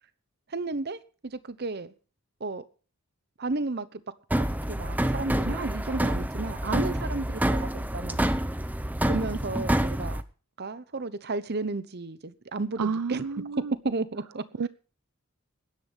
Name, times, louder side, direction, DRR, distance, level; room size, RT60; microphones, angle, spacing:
voice 1, 0.5-1.9 2.4-2.6 3.4-4.0 4.7-8.2 9.1-10.2 10.6-13.4 13.8-14.7, right 3 dB, 45° right, 0.9 m, -33 dB
sound 1, 4.3-10.2, right 1 dB, 5° right, 0.7 m, -27 dB
voice 2, 12.8-13.7 14.6-14.7, right 5 dB, 85° right, 0.6 m, -30 dB
20.5 x 10.5 x 3.4 m
head